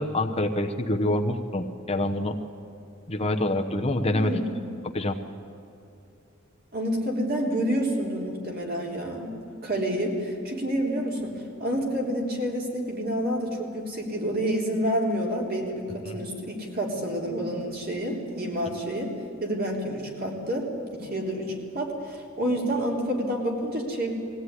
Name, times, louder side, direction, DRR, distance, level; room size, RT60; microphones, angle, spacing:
voice 1, 0.0-2.4 3.1-4.5 4.9-5.2, left 1 dB, 30° left, 5 dB, 0.9 m, -26 dB
voice 2, 4.1-4.6 6.7-9.3 9.6-19.1 19.4-24.1, equal, 45° right, -1 dB, 3.7 m, -29 dB
21.5 x 16.0 x 9.8 m, 2.7 s
head